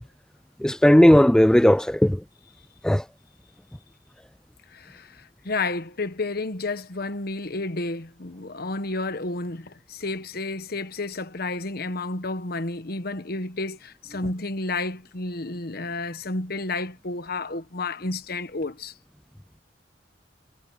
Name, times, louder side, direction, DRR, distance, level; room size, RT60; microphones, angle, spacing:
voice 1, 0.6-2.2 2.8-3.0, equal, 5° left, 0.3 m, -16 dB
voice 2, 4.7-18.9, left 3 dB, 60° left, 1.2 m, -31 dB
head